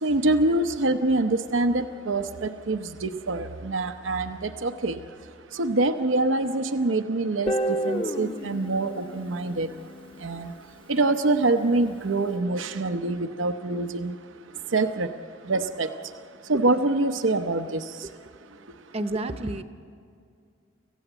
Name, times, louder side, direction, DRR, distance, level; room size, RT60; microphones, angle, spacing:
voice 1, 0.0-5.0 5.6-7.5 7.8-9.7 10.2-10.5 10.9-14.1 14.7-15.1 15.5-15.9 16.5-17.8, right 2 dB, 85° right, 8 dB, 0.8 m, -25 dB
Guitar, 7.5-10.4, equal, 30° left, 0.9 m, -30 dB
voice 2, 18.6-19.6, right 1 dB, 30° right, 9 dB, 0.8 m, -31 dB
25.5 x 15.5 x 8.1 m, 2.3 s
head